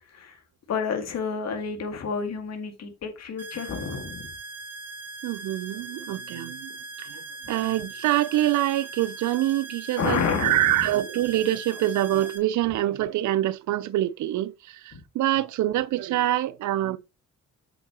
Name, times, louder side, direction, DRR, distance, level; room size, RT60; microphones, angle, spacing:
voice 1, 0.7-4.3 10.0-10.9 14.9-15.0, left 5 dB, 60° left, 2.1 m, -29 dB
sound 1, 3.4-12.4, right 2 dB, 55° right, 1.9 m, -40 dB
voice 2, 5.2-17.0, right 14 dB, 75° right, 0.6 m, -25 dB
7.8 x 6.2 x 3.0 m
cardioid pair, 90°, 30 cm